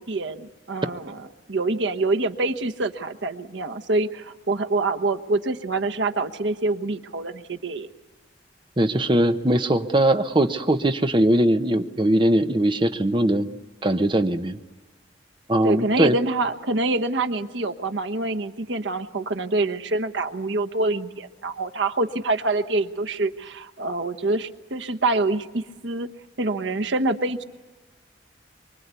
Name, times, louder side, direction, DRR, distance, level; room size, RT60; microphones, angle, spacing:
voice 1, 0.0-7.9 15.6-26.1 26.4-27.4, right 2 dB, 85° right, 6 dB, 1.2 m, -26 dB
voice 2, 8.8-13.5 13.8-14.6 15.5-16.2, right 1 dB, 25° right, 8 dB, 0.9 m, -20 dB
24.5 x 24.0 x 8.3 m, 1.2 s
head